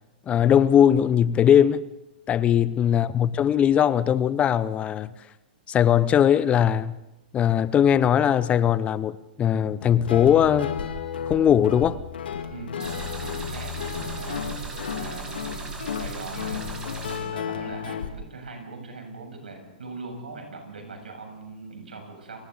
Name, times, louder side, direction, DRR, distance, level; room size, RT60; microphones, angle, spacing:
voice 1, 0.3-1.9 2.3-5.1 5.7-7.0 7.3-10.7 11.3-12.0, left 9 dB, 25° left, 0.8 m, -20 dB
Guitar, 9.8-18.1, left 7 dB, 80° left, 2.3 m, -33 dB
voice 2, 12.5-14.4 14.9-22.4, right 3 dB, 85° right, 7.4 m, -41 dB
sound 1, 12.8-17.2, right 3 dB, 15° right, 6.0 m, -37 dB
29.5 x 22.0 x 4.1 m
hypercardioid pair, 125°, 5 cm